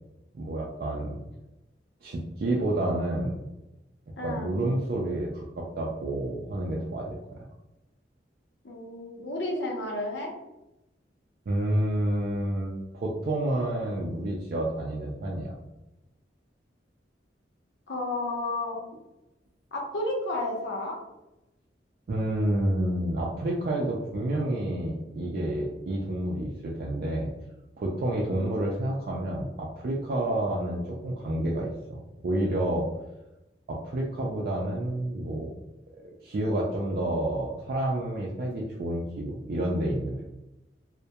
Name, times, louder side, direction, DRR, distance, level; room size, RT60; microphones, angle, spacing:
voice 1, 0.3-1.2 2.0-3.5 4.2-7.4 11.5-15.5 22.1-27.3 27.8-32.9 33.7-35.5 36.0-40.3, right 1 dB, 55° right, -3 dB, 0.3 m, -29 dB
voice 2, 4.2-4.5 8.6-10.3 17.9-18.8 19.7-21.0 28.3-28.6, left 2 dB, 75° left, -1 dB, 0.7 m, -32 dB
2.2 x 2.1 x 2.7 m, 0.95 s
head